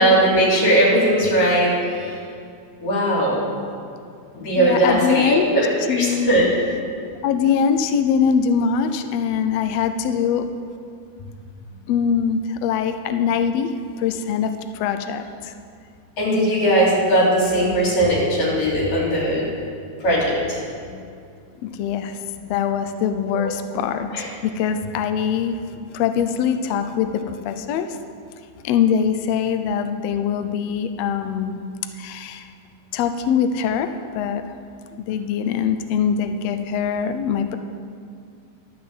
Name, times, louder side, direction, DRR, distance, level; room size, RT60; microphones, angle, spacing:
voice 1, 0.0-2.2 2.8-3.5 4.4-6.5 16.2-19.4 20.0-20.6 23.4-23.5 24.1-24.2, right 1 dB, 60° left, -5 dB, 4.2 m, -19 dB
voice 2, 4.6-5.5 5.9-6.3 7.2-10.5 11.7-15.5 20.8-21.0 21.6-28.0 28.6-31.6 31.9-32.5 32.9-34.5 35.0-37.6, left 7 dB, 85° left, 8 dB, 1.4 m, -23 dB
11.5 x 5.7 x 7.7 m, 2.3 s
omnidirectional pair, 3.6 m